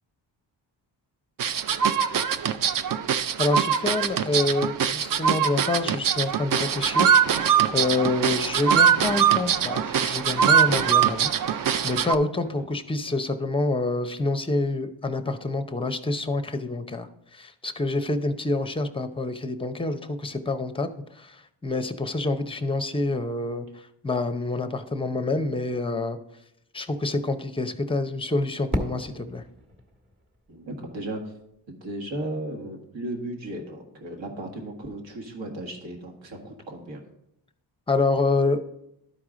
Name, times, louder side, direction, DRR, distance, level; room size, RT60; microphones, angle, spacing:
sound 1, 1.4-12.2, right 8 dB, 50° right, 0.5 m, -22 dB
voice 1, 3.4-23.7 24.0-26.2 26.7-29.4 37.9-38.6, left 2 dB, 10° left, 9 dB, 0.5 m, -27 dB
Fireworks, 28.7-31.6, equal, 25° right, 1.3 m, -34 dB
voice 2, 30.5-31.3 31.7-37.0, right 1 dB, 80° right, 1 dB, 1.8 m, -35 dB
12.0 x 4.8 x 3.7 m, 0.80 s
cardioid pair, 105°, 44 cm